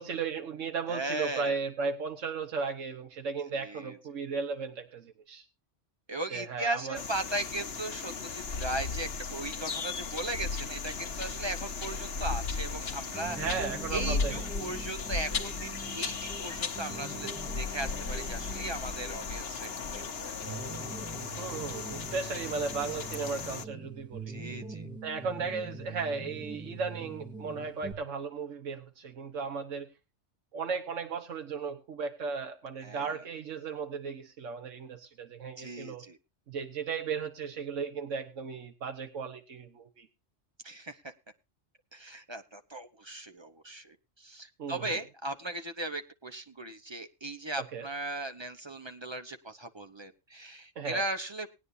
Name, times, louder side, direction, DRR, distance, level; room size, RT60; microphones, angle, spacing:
voice 1, 0.0-5.4 6.3-7.0 13.4-14.4 21.4-24.3 25.0-29.9 30.5-36.0 36.5-40.1 44.6-45.0 47.6-47.9 50.7-51.1, right 5 dB, 85° right, 1.5 m, -36 dB
voice 2, 0.9-1.6 3.6-4.0 6.1-13.4 13.9-20.3 24.3-24.9 32.8-33.2 35.6-36.2 40.6-41.1 41.9-51.5, right 2 dB, 25° right, 0.9 m, -37 dB
sound 1, 6.9-23.6, left 5 dB, 55° left, 1.3 m, -36 dB
sound 2, 13.1-27.9, right 3 dB, 5° right, 2.2 m, -44 dB
19.5 x 9.7 x 2.6 m
omnidirectional pair, 1.3 m